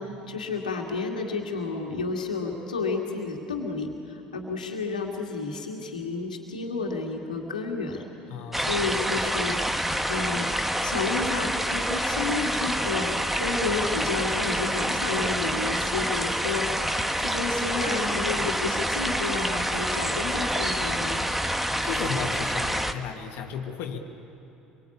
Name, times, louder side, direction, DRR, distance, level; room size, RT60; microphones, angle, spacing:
voice 1, 0.0-8.1 8.6-9.6 10.1-10.5 10.8-13.1 13.4-16.7 17.2-21.3, left 4 dB, 90° left, 1 dB, 2.2 m, -31 dB
voice 2, 8.3-8.7 21.4-21.5 21.8-24.0, left 6 dB, 60° left, 4 dB, 1.8 m, -34 dB
sound 1, 8.5-22.9, equal, 5° right, 1.5 m, -27 dB
25.0 x 23.5 x 8.6 m, 3.0 s
hypercardioid pair, 65°, 4 cm